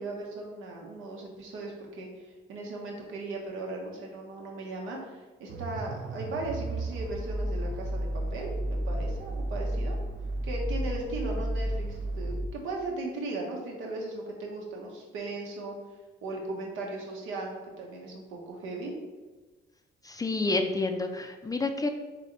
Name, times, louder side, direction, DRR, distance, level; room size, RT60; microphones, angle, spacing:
voice 1, 0.0-10.0 10.4-15.7 16.2-18.9, right 2 dB, 85° right, 0 dB, 0.9 m, -37 dB
sound 1, 5.5-12.5, right 1 dB, 65° right, 0.5 m, -32 dB
voice 2, 20.0-21.9, left 3 dB, 20° left, 5 dB, 0.4 m, -29 dB
3.4 x 3.1 x 3.8 m, 1.3 s
cardioid pair, 90°, 20 cm